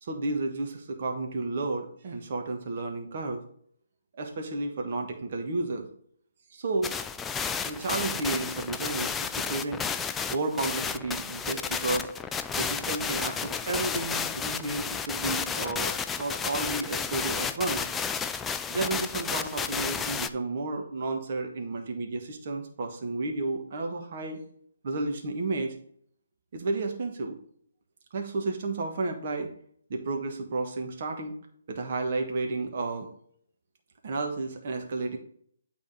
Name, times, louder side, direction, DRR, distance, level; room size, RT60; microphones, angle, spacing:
voice 1, 0.0-3.4 4.2-5.9 6.5-6.9 7.6-9.8 10.3-12.1 12.6-17.9 18.7-24.4 24.8-25.7 26.5-27.4 28.1-29.5 29.9-31.4 31.7-33.1 34.0-35.2, right 3 dB, 50° right, 3 dB, 1.4 m, -32 dB
sound 1, 6.8-20.3, left 6 dB, 10° left, 0.3 m, -32 dB
8.6 x 3.8 x 4.9 m, 0.62 s
figure-of-eight pair, 145°, 0 cm